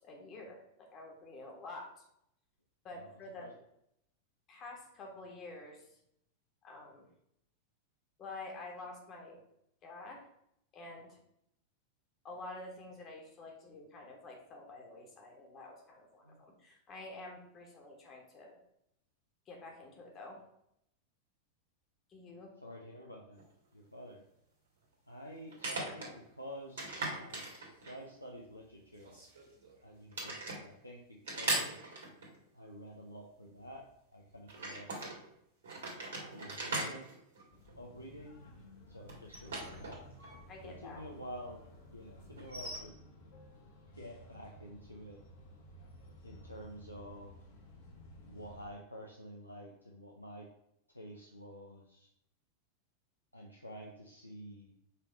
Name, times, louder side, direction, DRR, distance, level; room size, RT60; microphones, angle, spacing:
voice 1, 0.0-2.0 2.8-3.5 4.5-5.9 6.6-7.1 8.2-9.4 9.8-10.2 10.7-11.2 12.2-18.6 19.5-20.4 22.1-22.5 40.5-41.0, left 2 dB, 30° left, 0 dB, 1.5 m, -48 dB
voice 2, 22.6-23.4 23.7-24.2 25.1-29.2 29.8-32.0 32.5-35.1 36.3-37.1 37.7-38.4 38.9-40.0 40.6-42.9 44.0-45.2 46.2-47.4 48.3-50.5 50.9-52.1 53.3-54.7, equal, 85° left, -1 dB, 0.7 m, -49 dB
sound 1, 23.4-23.5 25.5-26.1 26.8-28.1 29.0-29.8 30.1-30.6 31.3-32.4 34.5-35.2 35.6-38.1 39.1-40.4 40.6-40.7 42.4-42.8, right 2 dB, 60° right, 1.9 m, -39 dB
sound 2, 37.5-48.7, left 1 dB, 55° left, 1.5 m, -55 dB
5.5 x 3.4 x 5.2 m, 0.76 s
figure-of-eight pair, 90°, 0 cm